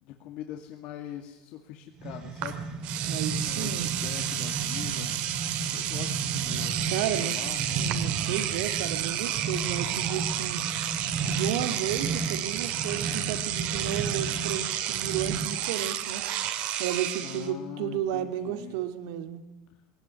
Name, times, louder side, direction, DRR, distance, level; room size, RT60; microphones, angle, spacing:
voice 1, 0.0-2.7 3.4-5.1 5.7-6.8 7.1-7.8 17.2-18.8, left 11 dB, 55° left, 4 dB, 2.2 m, -42 dB
sound 1, 2.0-15.7, right 4 dB, 35° right, 2.5 m, -34 dB
Engine / Domestic sounds home sounds, 2.4-2.5 2.8-17.5, right 12 dB, 55° right, 2.1 m, -31 dB
voice 2, 3.1-3.9 6.9-7.4 7.7-10.6 11.3-16.2 16.8-19.4, right 10 dB, 80° right, 10 dB, 2.1 m, -32 dB
20.5 x 17.5 x 9.5 m, 1.0 s
supercardioid pair, 140°, 2 cm